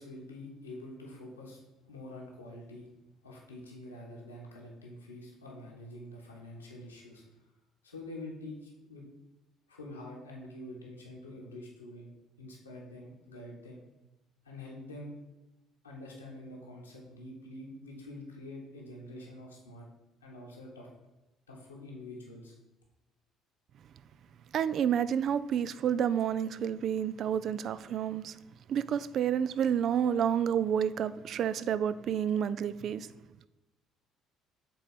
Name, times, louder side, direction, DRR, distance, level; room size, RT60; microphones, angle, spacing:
voice 1, 0.0-2.9 3.2-7.5 7.8-9.0 9.7-12.1 12.4-13.8 14.4-15.1 15.8-19.9 20.2-20.9 21.5-22.5, left 1 dB, 85° left, -3 dB, 1.3 m, -46 dB
voice 2, 24.5-28.4 28.7-33.1, right 8 dB, 50° right, 15 dB, 0.3 m, -29 dB
7.8 x 4.1 x 4.3 m, 1.0 s
figure-of-eight pair, 50°, 0 cm